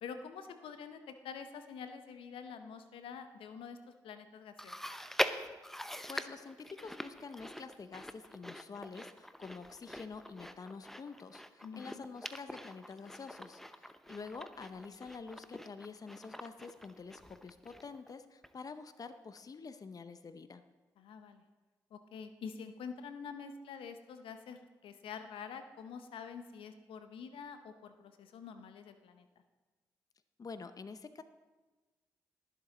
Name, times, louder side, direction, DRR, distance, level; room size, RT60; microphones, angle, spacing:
voice 1, 0.0-4.8 11.6-12.0 21.0-21.4 21.9-29.3, left 6 dB, 75° left, 9 dB, 0.8 m, -47 dB
Chewing mastication, 4.6-18.1 18.4-18.5 19.4-19.5, equal, 5° left, 0.8 m, -43 dB
voice 2, 6.1-20.6 30.4-31.2, left 4 dB, 40° left, 11 dB, 0.7 m, -47 dB
19.0 x 7.4 x 3.9 m, 1.2 s
hypercardioid pair, 40°, 9 cm